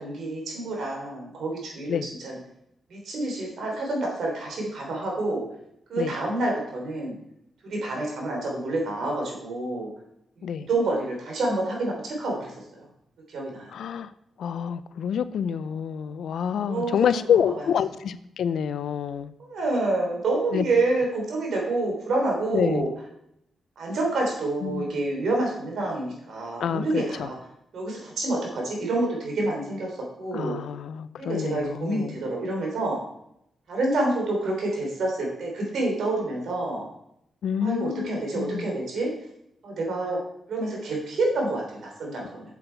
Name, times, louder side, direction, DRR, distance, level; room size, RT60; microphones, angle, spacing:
voice 1, 0.0-2.0 2.2-2.3 2.9-5.4 5.9-7.1 7.6-9.9 10.7-12.5 13.3-13.7 16.6-17.0 17.6-17.7 19.4-22.9 23.8-27.4 27.7-30.6 31.2-33.0 33.7-36.8 37.6-39.1 39.6-40.2 40.5-42.4, right 2 dB, 75° right, -1 dB, 3.3 m, -28 dB
voice 2, 13.7-14.1 14.4-19.3 20.5-20.6 22.5-22.9 24.6-24.8 26.6-27.3 30.3-32.2 37.4-38.7, left 8 dB, 75° left, 14 dB, 0.5 m, -27 dB
7.7 x 7.2 x 4.5 m, 0.77 s
cardioid pair, 60°, 0 cm